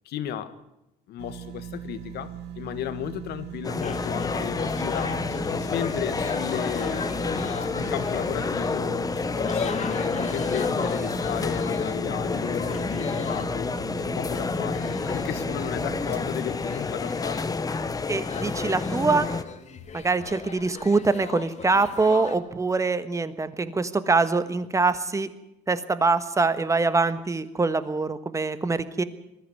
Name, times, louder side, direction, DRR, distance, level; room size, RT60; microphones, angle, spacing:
voice 1, 0.0-0.6 1.1-7.4 7.7-13.7 14.0-17.5, left 10 dB, 75° left, 1.6 m, -35 dB
sound 1, 1.2-18.4 18.9-19.0, right 9 dB, 80° right, 1.7 m, -40 dB
sound 2, 3.6-19.4, left 4 dB, 20° left, 0.9 m, -29 dB
sound 3, 3.8-8.9 9.1-22.4, left 6 dB, 40° left, 2.2 m, -38 dB
voice 2, 18.1-19.3 19.9-25.3 25.7-29.0, right 3 dB, 20° right, 1.3 m, -24 dB
20.5 x 14.0 x 9.5 m
cardioid pair, 110°, 17 cm